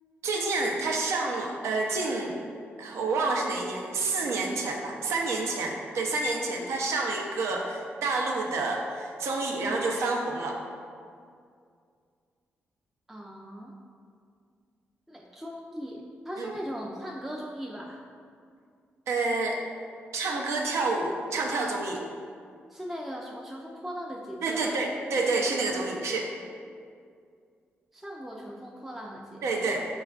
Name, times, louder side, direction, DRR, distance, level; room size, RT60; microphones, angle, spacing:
voice 1, 0.2-2.4 2.8-10.6 16.4-16.5 19.1-19.6 20.1-22.0 24.4-26.3 29.4-29.9, right 3 dB, 75° right, 1 dB, 0.4 m, -28 dB
voice 2, 13.1-13.8 15.1-18.0 22.7-24.8 27.9-29.5, equal, 5° right, -2 dB, 0.3 m, -39 dB
4.4 x 2.3 x 2.3 m, 2.2 s
supercardioid pair, 55°, 5 cm